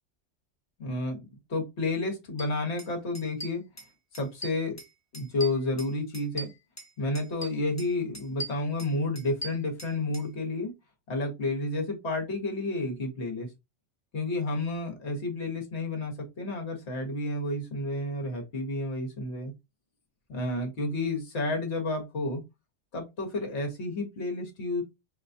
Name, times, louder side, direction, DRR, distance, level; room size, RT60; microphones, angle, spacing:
voice 1, 0.8-3.7 4.1-4.8 5.1-6.5 7.0-10.7 11.1-13.5 14.1-19.5 20.3-22.4 22.9-24.8, left 2 dB, 70° left, 1.5 m, -31 dB
sound 1, 2.4-2.5 2.8-2.9 3.1-4.9 5.1-6.9 7.2-7.9 8.1-10.3, right 1 dB, 15° left, 1.0 m, -40 dB
5.2 x 2.3 x 2.6 m
omnidirectional pair, 1.2 m